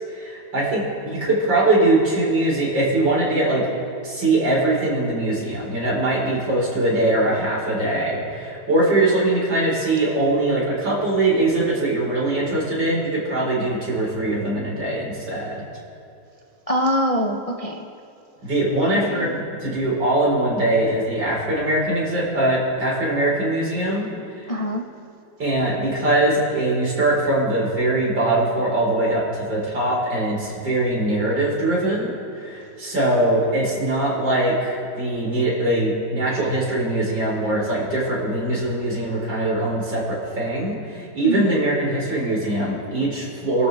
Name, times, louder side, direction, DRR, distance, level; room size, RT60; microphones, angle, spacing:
voice 1, 0.1-3.6 4.0-15.6 18.4-24.1 24.4-24.5 25.4-43.7, right 2 dB, 85° right, -5 dB, 5.2 m, -22 dB
voice 2, 16.7-17.9 18.8-19.3 24.5-24.8 41.2-41.6, equal, 30° left, 1 dB, 0.6 m, -24 dB
29.0 x 12.5 x 3.5 m, 2.7 s
omnidirectional pair, 1.9 m